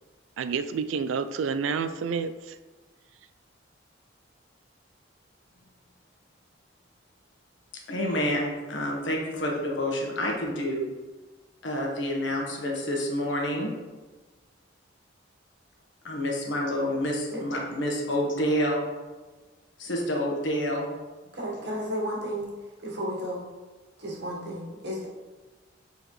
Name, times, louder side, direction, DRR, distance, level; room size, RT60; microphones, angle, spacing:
voice 1, 0.4-2.6, right 5 dB, 90° right, 11 dB, 0.3 m, -29 dB
voice 2, 7.9-10.9 11.6-13.7 16.0-18.9 19.8-20.9, equal, 70° left, -1 dB, 1.2 m, -28 dB
voice 3, 21.3-22.5 22.8-23.4 24.0-25.1, equal, 60° right, -4 dB, 1.6 m, -33 dB
7.6 x 4.0 x 3.2 m, 1.3 s
head